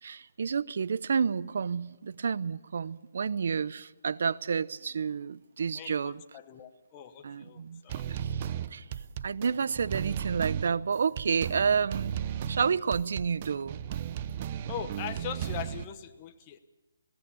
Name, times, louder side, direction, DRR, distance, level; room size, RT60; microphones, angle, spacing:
voice 1, 0.0-6.2 7.2-7.8 8.1-8.9 9.2-12.2 12.5-13.8, right 6 dB, 65° right, 0.6 m, -30 dB
voice 2, 5.7-8.0 14.7-16.6, left 10 dB, 25° left, 1.0 m, -41 dB
sound 1, 7.9-15.8, right 9 dB, 35° right, 0.8 m, -35 dB
21.5 x 17.5 x 7.0 m
hypercardioid pair, 160°, 0 cm